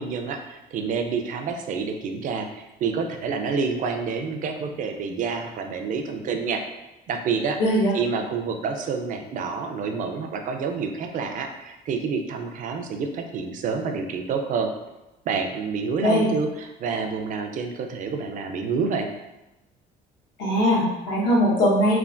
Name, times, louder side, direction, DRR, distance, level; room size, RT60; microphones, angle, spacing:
voice 1, 0.0-6.6 7.1-7.6 7.9-14.7 15.3-19.1, right 5 dB, 50° right, 5 dB, 0.4 m, -28 dB
voice 2, 7.6-7.9 16.0-16.3 20.4-22.0, equal, 85° left, -7 dB, 1.2 m, -20 dB
3.2 x 2.2 x 2.5 m, 0.99 s
cardioid pair, 110°, 17 cm